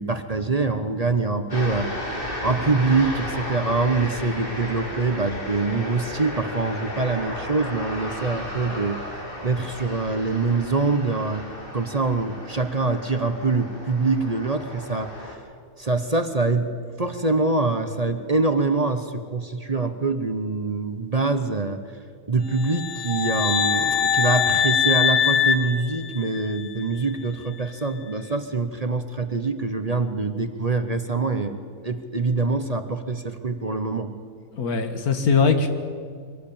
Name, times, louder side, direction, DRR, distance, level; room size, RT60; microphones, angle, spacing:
voice 1, 0.0-1.9 2.4-9.0 9.4-11.5 11.7-15.4 15.8-16.7 17.0-21.8 22.3-34.1, right 3 dB, 30° right, 8 dB, 0.9 m, -24 dB
sound 1, 1.5-15.4, left 1 dB, 35° left, 3.4 m, -34 dB
sound 2, 22.6-26.6, left 7 dB, 65° left, 1.8 m, -22 dB
voice 2, 34.5-35.7, left 5 dB, 85° left, 8 dB, 2.1 m, -21 dB
23.5 x 17.5 x 8.7 m, 2.1 s
omnidirectional pair, 1.5 m